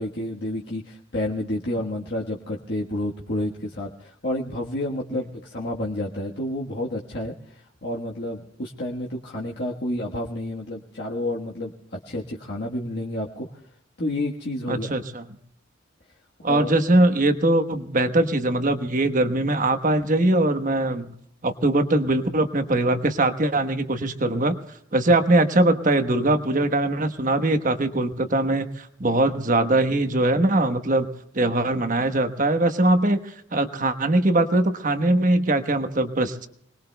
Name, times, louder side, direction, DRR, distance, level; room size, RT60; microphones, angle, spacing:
voice 1, 0.0-13.6 14.0-14.9 16.5-16.7, left 1 dB, 60° left, -3 dB, 1.4 m, -30 dB
voice 2, 14.7-15.2 16.4-21.1 21.4-24.5 24.9-31.1 31.3-36.5, right 2 dB, 45° right, 9 dB, 1.1 m, -21 dB
28.0 x 20.5 x 2.3 m, 0.73 s
head